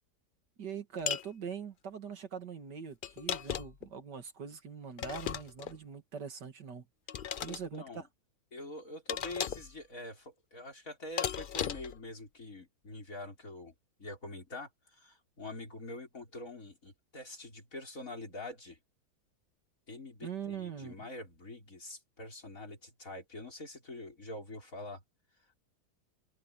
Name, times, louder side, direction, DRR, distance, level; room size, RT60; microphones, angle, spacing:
voice 1, 0.6-6.9 7.4-8.1 20.2-21.1, right 7 dB, 90° right, 2.7 m, -42 dB
sound 1, 1.1-1.3 3.0-3.9 5.0-5.8 7.1-7.6 9.1-9.7 11.2-12.0, left 8 dB, 75° left, 0.4 m, -36 dB
voice 2, 7.4-8.0 8.5-13.7 14.0-18.8 19.9-25.0, left 2 dB, 50° left, 6.1 m, -45 dB
omnidirectional pair, 1.8 m